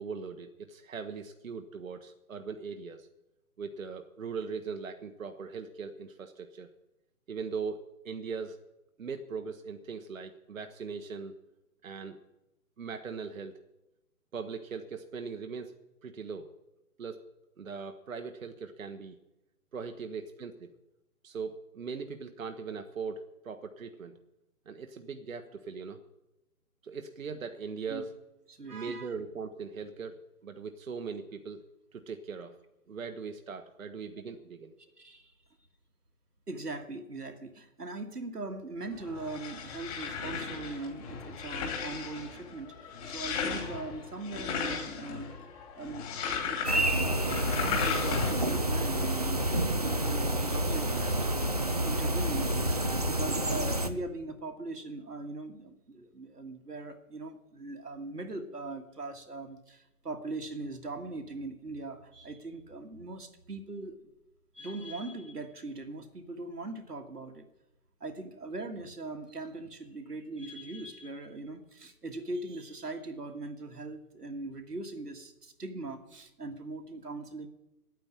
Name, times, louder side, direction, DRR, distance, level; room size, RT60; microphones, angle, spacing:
voice 1, 0.0-3.1 3.6-6.7 7.3-8.6 9.0-11.4 11.8-12.2 12.8-13.6 14.3-15.7 16.0-16.5 17.0-17.2 17.6-19.2 19.7-20.7 21.2-24.2 24.7-26.0 26.8-28.1 28.7-31.6 31.9-32.6 32.9-34.7, right 5 dB, 60° right, 6 dB, 1.0 m, -40 dB
voice 2, 28.5-29.1 35.0-35.3 36.5-45.3 45.8-52.8 53.1-64.0 64.5-67.5 68.0-77.5, right 2 dB, 85° right, 5 dB, 1.9 m, -40 dB
sound 1, 38.9-48.6, left 6 dB, 20° left, 2.6 m, -36 dB
sound 2, 46.6-53.9, right 1 dB, 25° right, 0.5 m, -29 dB
9.3 x 9.0 x 9.9 m, 0.95 s
figure-of-eight pair, 145°, 46 cm